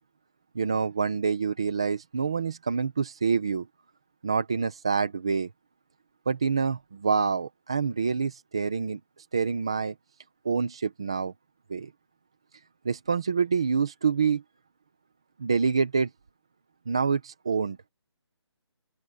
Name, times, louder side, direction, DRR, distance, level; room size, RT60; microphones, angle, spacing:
voice 1, 0.5-3.7 4.2-5.5 6.3-9.0 9.3-9.9 10.4-11.3 11.7-11.9 12.8-14.4 15.4-16.1 16.9-17.8, right 5 dB, 10° right, 0.6 m, -26 dB
open air
hypercardioid pair, 175°, 15 cm